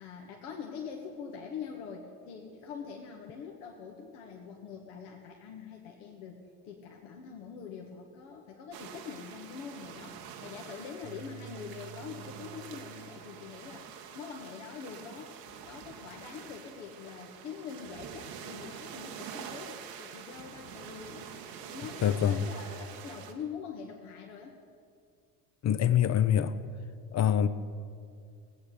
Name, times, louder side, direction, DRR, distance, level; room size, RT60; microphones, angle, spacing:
voice 1, 0.0-13.9 14.2-21.3 21.7-24.6, left 6 dB, 65° left, 1.7 m, -44 dB
sound 1, 8.7-23.3, right 7 dB, 75° right, 1.4 m, -46 dB
sound 2, 11.0-13.5, right 9 dB, 55° right, 1.5 m, -50 dB
voice 2, 22.0-22.5 25.6-26.6 27.1-27.5, left 9 dB, 35° left, 0.8 m, -25 dB
18.5 x 8.5 x 6.8 m
hypercardioid pair, 65°, 49 cm